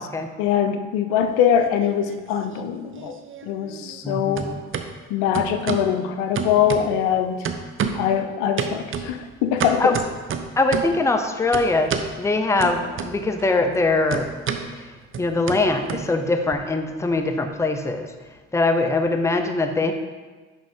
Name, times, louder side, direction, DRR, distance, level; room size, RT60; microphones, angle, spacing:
voice 1, 0.4-3.2 3.4-4.6 5.1-7.4 7.9-10.0, left 9 dB, 75° left, 8 dB, 0.6 m, -22 dB
sound 1, 1.2-2.2 2.5-4.1 4.3-4.9 5.3-5.9 6.3-7.1 7.4-8.1 8.6-11.0 11.5-12.1 12.6-13.4 13.7-16.6, right 6 dB, 35° right, 0.6 m, -30 dB
voice 2, 4.0-4.6 9.8-9.9 10.6-14.3 15.2-18.1 18.5-19.9, left 2 dB, 10° left, 6 dB, 0.6 m, -22 dB
10.0 x 3.7 x 3.6 m, 1.3 s
supercardioid pair, 70°, 35 cm